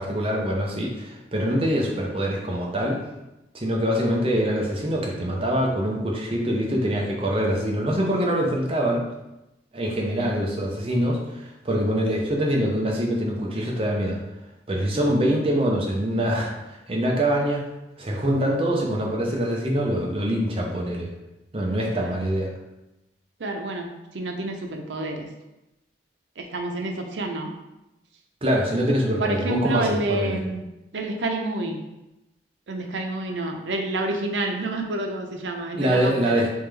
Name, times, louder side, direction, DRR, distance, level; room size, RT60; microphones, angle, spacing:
voice 1, 0.0-3.0 3.5-9.1 9.7-14.2 14.7-16.5 16.9-17.7 18.0-21.1 21.5-22.5 28.4-30.4 35.7-36.5, equal, 30° right, -1 dB, 0.7 m, -24 dB
voice 2, 23.4-23.9 24.1-25.3 26.4-27.5 29.2-30.6 30.9-31.8 32.7-36.5, right 2 dB, 90° right, 3 dB, 0.6 m, -28 dB
3.6 x 3.4 x 3.3 m, 0.95 s
head